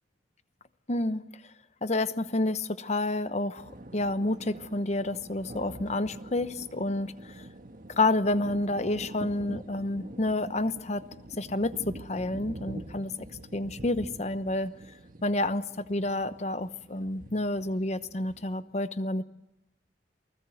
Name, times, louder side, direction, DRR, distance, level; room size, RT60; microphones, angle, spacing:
voice 1, 0.9-1.2 1.8-3.6 3.9-7.1 8.0-11.0 11.4-13.1 13.5-14.7 15.2-15.6 15.9-19.2, left 2 dB, 40° left, 12 dB, 1.0 m, -29 dB
sound 1, 3.6-18.6, right 1 dB, 50° right, 1.6 m, -45 dB
28.5 x 20.0 x 7.9 m, 0.92 s
head